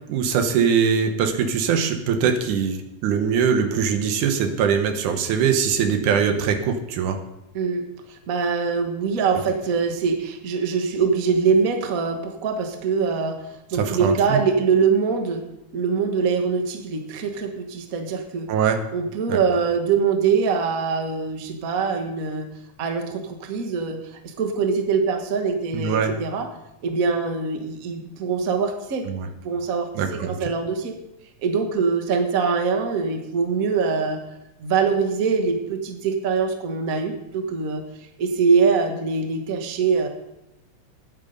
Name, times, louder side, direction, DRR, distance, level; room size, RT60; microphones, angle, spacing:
voice 1, 0.1-7.2 13.8-14.4 18.5-18.8 19.3-19.4 25.7-26.1 29.1-29.3 30.0-30.4, right 7 dB, 85° right, 6 dB, 2.6 m, -22 dB
voice 2, 7.5-13.4 13.7-15.4 15.7-18.5 18.9-22.5 22.8-26.5 26.8-29.1 29.4-31.0 31.4-34.2 34.6-37.8 38.2-40.1, right 5 dB, 60° right, 5 dB, 0.9 m, -23 dB
9.7 x 9.5 x 5.2 m, 0.89 s
omnidirectional pair, 3.5 m